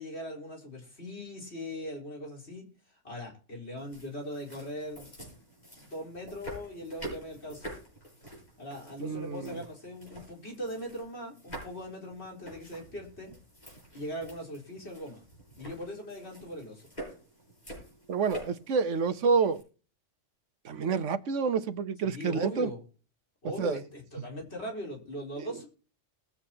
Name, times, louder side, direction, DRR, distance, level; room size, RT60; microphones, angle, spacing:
voice 1, 0.0-5.1 5.8-7.8 8.6-13.3 13.9-15.2 15.6-16.9 22.0-22.8 23.4-25.7, equal, 60° left, 4.6 m, -40 dB
sound 1, 3.8-19.6, right 1 dB, 35° left, 7.6 m, -47 dB
voice 2, 9.0-9.6 18.1-19.6 20.6-22.7 23.6-23.8, right 5 dB, 75° right, 1.2 m, -28 dB
21.0 x 8.2 x 2.9 m
omnidirectional pair, 1.3 m